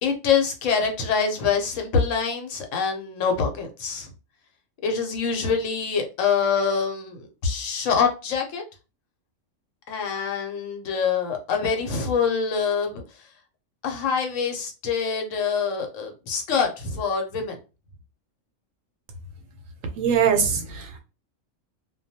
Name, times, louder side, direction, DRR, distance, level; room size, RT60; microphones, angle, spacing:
voice 1, 0.0-4.1 4.8-8.6 9.9-13.0 13.8-17.6, left 6 dB, 75° left, 1.0 m, -25 dB
voice 2, 20.0-21.0, right 7 dB, 80° right, 1.0 m, -22 dB
2.3 x 2.2 x 2.7 m
omnidirectional pair, 1.4 m